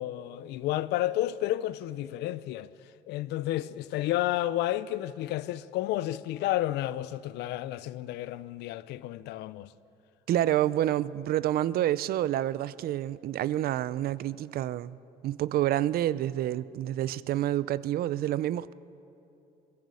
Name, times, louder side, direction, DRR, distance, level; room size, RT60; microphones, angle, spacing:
voice 1, 0.0-2.7 3.1-9.7, left 14 dB, 85° left, 0.6 m, -31 dB
voice 2, 10.3-15.0 15.2-18.7, right 13 dB, 65° right, 0.5 m, -28 dB
21.5 x 14.5 x 8.4 m
cardioid pair, 110°, 17 cm